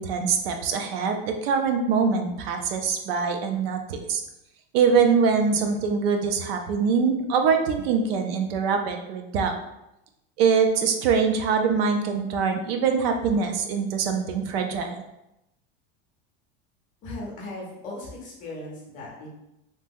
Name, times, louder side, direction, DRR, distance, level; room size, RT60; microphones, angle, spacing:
voice 1, 0.0-4.2 4.7-9.5 10.4-15.0, right 5 dB, 80° right, 5 dB, 0.5 m, -23 dB
voice 2, 17.0-19.3, left 2 dB, 25° left, -3 dB, 0.6 m, -37 dB
2.8 x 2.1 x 3.4 m, 0.89 s
supercardioid pair, 175°, 30 cm